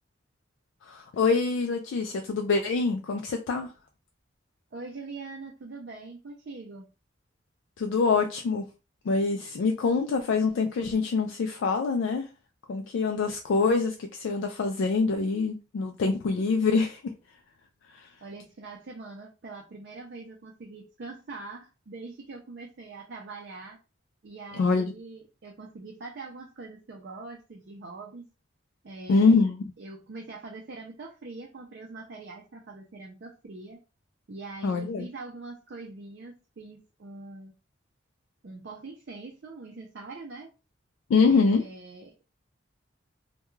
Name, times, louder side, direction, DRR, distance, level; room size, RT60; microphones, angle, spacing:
voice 1, 0.9-3.7 7.8-8.6 9.1-12.3 12.7-17.0 17.9-18.1 24.5-24.9 29.1-29.7 34.6-35.1 41.1-41.6, left 4 dB, 75° left, 0.3 m, -25 dB
voice 2, 4.7-6.9 18.2-23.8 24.2-28.3 28.8-29.4 29.8-33.8 34.3-37.5 38.4-40.5 41.2-42.3, right 3 dB, 55° right, 0.4 m, -43 dB
2.2 x 2.2 x 3.0 m
head